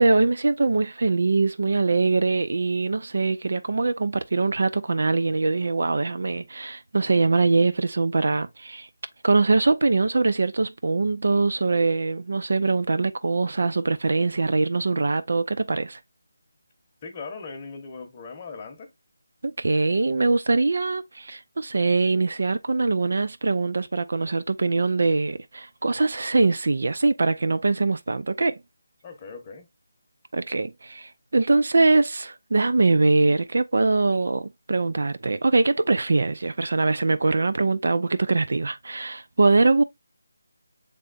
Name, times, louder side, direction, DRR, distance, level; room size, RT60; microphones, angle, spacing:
voice 1, 0.0-8.9 9.2-16.0 19.4-28.6 30.3-39.8, right 3 dB, 65° right, 0.4 m, -22 dB
voice 2, 17.0-18.9 29.0-29.7, left 4 dB, 25° left, 0.9 m, -39 dB
6.4 x 3.4 x 2.4 m
figure-of-eight pair, 165°, 0 cm